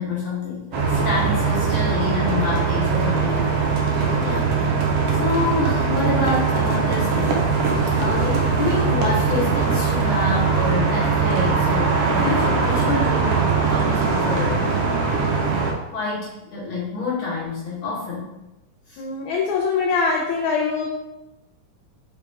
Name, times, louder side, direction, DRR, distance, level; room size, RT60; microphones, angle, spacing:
voice 1, 0.0-3.6 3.9-4.5 5.1-7.5 8.0-14.6 14.9-15.0 15.9-18.3 18.9-19.0, left 3 dB, 60° left, -7 dB, 1.5 m, -27 dB
sound 1, 0.7-15.7, right 5 dB, 85° right, 1.3 m, -21 dB
voice 2, 19.0-20.8, left 5 dB, 80° left, -1 dB, 2.0 m, -23 dB
4.6 x 3.6 x 3.2 m, 0.97 s
omnidirectional pair, 3.5 m